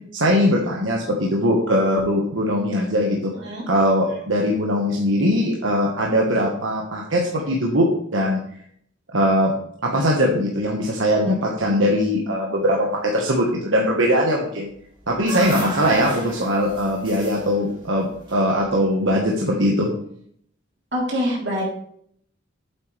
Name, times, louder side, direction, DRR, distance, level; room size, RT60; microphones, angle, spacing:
voice 1, 0.1-3.3 3.7-8.4 9.1-9.5 9.8-14.7 15.1-19.9, equal, 90° right, -1 dB, 1.5 m, -21 dB
sound 1, 14.8-19.0, right 1 dB, 25° right, 3.5 m, -35 dB
voice 2, 20.9-21.6, equal, 65° right, -3 dB, 3.6 m, -25 dB
9.1 x 8.1 x 3.4 m, 0.65 s
head